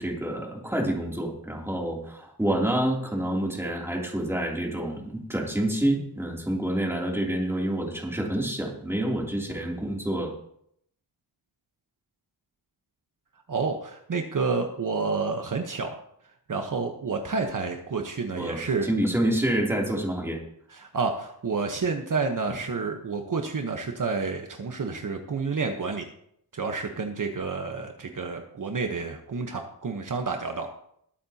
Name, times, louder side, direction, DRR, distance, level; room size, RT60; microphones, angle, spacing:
voice 1, 0.0-10.3 18.4-18.6 18.8-20.4, right 1 dB, 5° right, -2 dB, 3.0 m, -28 dB
voice 2, 13.5-16.0 16.5-18.9 20.7-26.1 26.5-30.7, right 4 dB, 50° right, 3 dB, 1.2 m, -29 dB
20.5 x 8.7 x 2.9 m, 0.71 s
wide cardioid pair, 120°, 39 cm